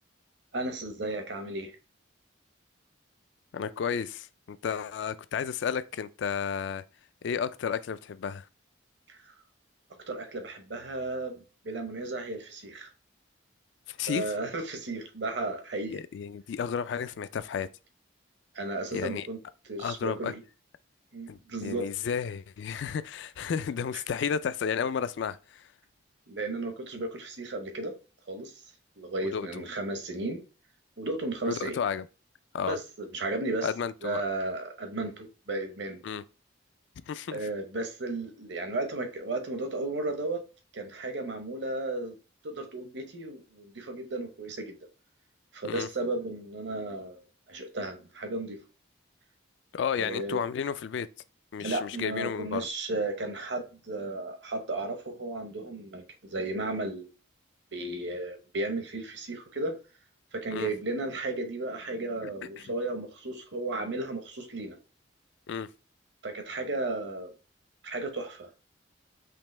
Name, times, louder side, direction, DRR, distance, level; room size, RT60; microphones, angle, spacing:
voice 1, 0.5-1.7 9.1-9.3 10.1-11.4 11.6-12.9 14.1-16.0 18.5-19.4 19.7-20.4 21.1-21.9 26.3-27.9 28.3-28.5 29.0-30.4 31.0-31.8 32.7-33.7 34.0-36.0 37.3-40.4 40.7-42.1 42.4-44.7 45.5-48.6 49.9-50.4 51.6-57.1 57.7-59.7 60.3-64.8 66.2-67.3 67.8-68.5, right 2 dB, 65° right, 1.0 m, -34 dB
voice 2, 3.5-6.8 7.2-8.5 13.9-14.3 15.9-17.7 18.9-19.3 19.8-20.3 21.3-25.7 29.2-29.5 31.5-32.1 32.5-32.8 33.6-34.2 36.0-36.2 37.1-37.4 45.6-45.9 49.7-51.1 51.5-52.7 60.5-60.7 62.2-62.3 62.6-62.7 65.5-65.7, left 7 dB, 65° left, 0.3 m, -32 dB
5.2 x 2.9 x 3.2 m
head